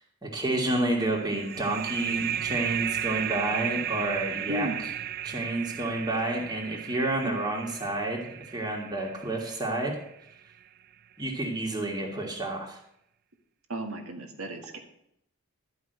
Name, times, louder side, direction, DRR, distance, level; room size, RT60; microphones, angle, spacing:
voice 1, 0.2-4.7 5.2-9.9 11.2-12.8, right 2 dB, 20° right, -1 dB, 1.7 m, -30 dB
sound 1, 1.0-10.3, right 10 dB, 45° right, 0.4 m, -34 dB
voice 2, 4.5-4.8 13.7-14.8, equal, 80° right, 4 dB, 1.7 m, -34 dB
12.5 x 5.4 x 7.8 m, 0.76 s
head